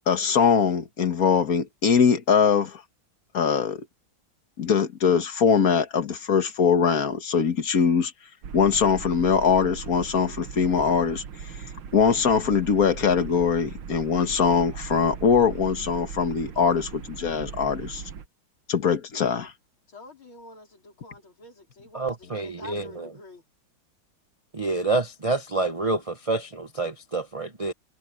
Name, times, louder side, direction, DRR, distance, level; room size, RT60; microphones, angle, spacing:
voice 1, 0.1-2.8 3.3-3.9 4.6-8.1 8.5-11.2 11.9-18.0 18.7-19.5, left 6 dB, 50° left, 1.9 m, -22 dB
sound 1, 8.4-18.3, right 7 dB, 65° right, 1.9 m, -39 dB
voice 2, 19.9-23.4, left 1 dB, 80° left, 5.5 m, -47 dB
voice 3, 21.9-23.1 24.5-27.7, right 3 dB, 25° right, 0.7 m, -28 dB
omnidirectional pair, 2.2 m